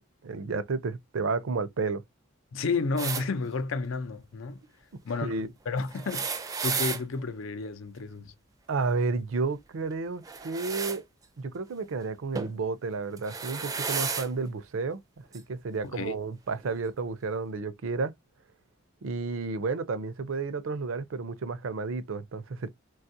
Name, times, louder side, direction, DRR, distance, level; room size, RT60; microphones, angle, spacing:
voice 1, 0.0-2.0 5.2-5.5 8.7-11.0 11.4-18.1 19.0-22.7, right 4 dB, 70° right, 0.5 m, -31 dB
voice 2, 2.5-4.6 5.0-5.3 5.7-8.3 15.8-16.2, left 4 dB, 70° left, 0.5 m, -31 dB
sound 1, 3.0-3.2 5.9-7.0 10.2-11.0 12.3-12.6 13.2-14.3 15.3-15.4 16.6-16.7, right 5 dB, 15° right, 0.4 m, -32 dB
3.2 x 2.3 x 2.6 m
head